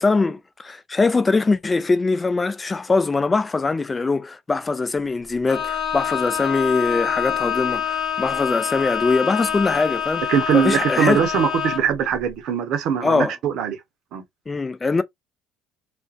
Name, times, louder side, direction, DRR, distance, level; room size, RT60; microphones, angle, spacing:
voice 1, 0.0-10.2 10.5-11.2 13.0-13.3 14.5-15.0, left 3 dB, 25° left, 0.4 m, -22 dB
Bowed string instrument, 5.5-12.0, left 9 dB, 60° left, 1.3 m, -26 dB
voice 2, 10.3-13.8 14.1-14.2, right 8 dB, 65° right, 0.7 m, -21 dB
2.5 x 2.1 x 2.4 m
hypercardioid pair, 60°, 0 cm